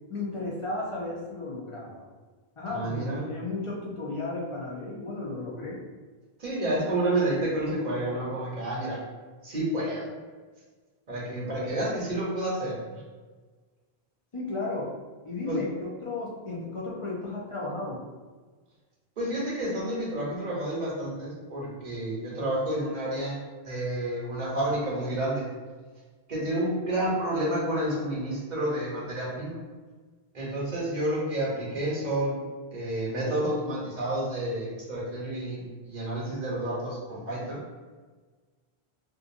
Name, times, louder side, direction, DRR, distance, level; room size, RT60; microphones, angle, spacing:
voice 1, 0.1-2.0 2.6-5.8 14.3-14.9 15.2-18.0, left 2 dB, 40° left, -5 dB, 0.5 m, -34 dB
voice 2, 2.7-3.3 6.4-9.0 9.4-10.1 11.1-13.0 15.5-15.6 19.2-25.5 26.3-29.6 30.3-32.4 32.7-37.6, right 1 dB, 50° right, -5 dB, 0.9 m, -30 dB
2.6 x 2.5 x 2.5 m, 1.4 s
omnidirectional pair, 1.1 m